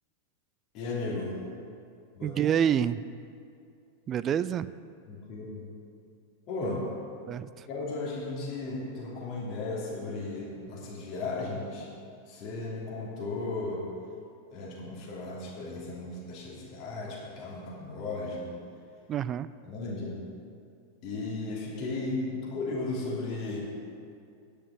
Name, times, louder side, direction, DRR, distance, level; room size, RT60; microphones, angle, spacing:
voice 1, 0.7-1.4 2.1-2.4 5.1-5.6 6.5-6.9 7.7-11.9 12.3-13.9 14.5-18.5 19.6-20.2 21.0-23.7, left 2 dB, 40° left, -5 dB, 2.9 m, -35 dB
voice 2, 2.2-3.0 4.1-4.7 7.3-7.7 19.1-19.5, right 9 dB, 30° right, 16 dB, 0.3 m, -27 dB
9.9 x 6.9 x 8.3 m, 2.4 s
figure-of-eight pair, 90°, 0 cm